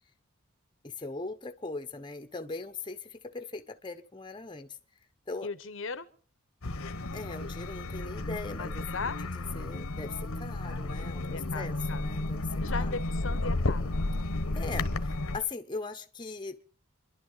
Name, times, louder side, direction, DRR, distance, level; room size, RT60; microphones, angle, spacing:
voice 1, 0.8-4.8 5.3-5.5 7.1-9.0 9.3-12.5 12.7-12.9 14.5-16.6, left 3 dB, 20° left, 7 dB, 1.0 m, -40 dB
voice 2, 5.4-6.1 8.6-9.2 11.3-12.1 12.6-14.0, left 4 dB, 65° left, 14 dB, 1.0 m, -37 dB
sound 1, 6.6-15.4, left 2 dB, 90° left, 1.3 m, -33 dB
28.0 x 11.5 x 4.0 m, 0.43 s
head